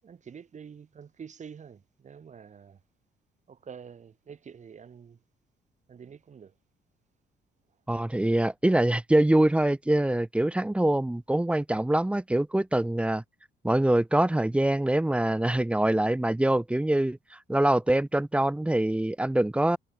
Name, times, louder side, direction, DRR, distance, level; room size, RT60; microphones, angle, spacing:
voice 1, 0.0-2.8 3.5-5.2 5.9-6.5, right 7 dB, 40° right, 6.8 m, -47 dB
voice 2, 7.9-13.2 13.6-17.2 17.5-19.8, right 1 dB, 5° right, 0.8 m, -24 dB
cardioid pair, 105°, 18 cm